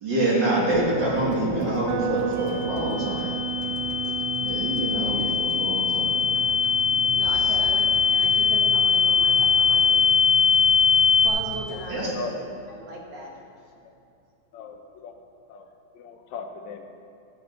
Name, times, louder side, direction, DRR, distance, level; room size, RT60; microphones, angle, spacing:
voice 1, 0.0-3.3 4.4-6.5 7.4-7.5 11.9-12.1, right 1 dB, 40° right, -5 dB, 2.2 m, -26 dB
sound 1, 0.7-12.9 13.2-13.3, left 2 dB, 10° right, 1.5 m, -40 dB
sound 2, 1.8-9.8, right 12 dB, 80° right, 1.4 m, -35 dB
sound 3, 2.4-11.3, left 6 dB, 35° left, 1.8 m, -22 dB
voice 2, 7.0-10.1 10.5-10.8 11.2-12.3 12.7-13.3, right 2 dB, 65° right, -1 dB, 2.3 m, -38 dB
voice 3, 14.5-15.2 15.5-15.7 15.9-16.9, left 5 dB, 80° left, 4 dB, 2.0 m, -38 dB
13.5 x 9.0 x 3.9 m, 2.6 s
omnidirectional pair, 3.4 m